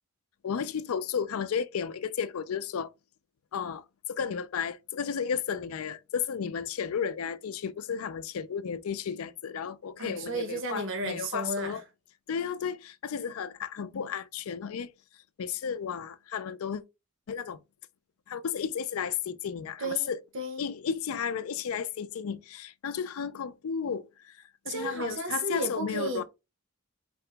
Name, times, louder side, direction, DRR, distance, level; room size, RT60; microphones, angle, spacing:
voice 1, 0.4-2.9 3.5-11.8 12.3-14.9 15.4-16.8 17.3-17.6 18.3-20.2 20.6-24.3 24.7-26.2, left 7 dB, 70° left, 0.4 m, -33 dB
voice 2, 10.0-11.8 19.8-20.7 24.7-26.2, right 2 dB, 60° right, 0.9 m, -34 dB
4.3 x 2.9 x 3.2 m
head